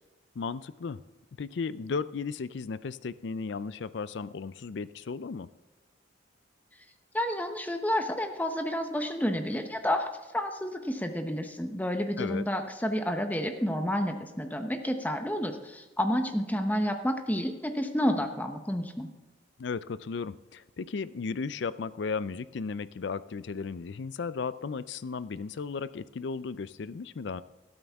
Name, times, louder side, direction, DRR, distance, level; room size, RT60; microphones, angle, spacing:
voice 1, 0.4-1.0 1.4-5.5 12.2-12.5 19.6-27.4, left 5 dB, 60° left, 16 dB, 0.4 m, -35 dB
voice 2, 7.1-10.1 10.3-19.1, equal, 10° left, 6 dB, 0.8 m, -30 dB
12.5 x 12.5 x 3.5 m, 1.2 s
head